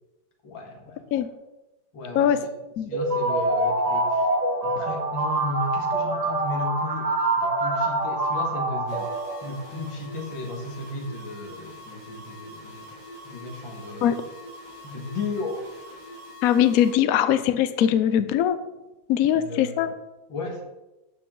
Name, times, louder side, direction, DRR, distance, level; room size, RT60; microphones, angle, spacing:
voice 1, 0.4-1.0 1.9-2.5 2.9-4.3 4.6-7.1 7.4-9.1 9.4-12.9 13.2-14.2 14.8-15.7 19.3-19.9 20.3-20.6, left 2 dB, 90° left, 1 dB, 2.5 m, -34 dB
sound 1, 2.9-9.7, right 2 dB, 30° right, 0.8 m, -25 dB
sound 2, 8.9-16.9, equal, 85° right, 3.2 m, -44 dB
voice 2, 16.4-18.6 19.1-19.9, left 10 dB, 65° left, 11 dB, 0.9 m, -21 dB
12.5 x 7.3 x 3.8 m, 1.0 s
omnidirectional pair, 2.0 m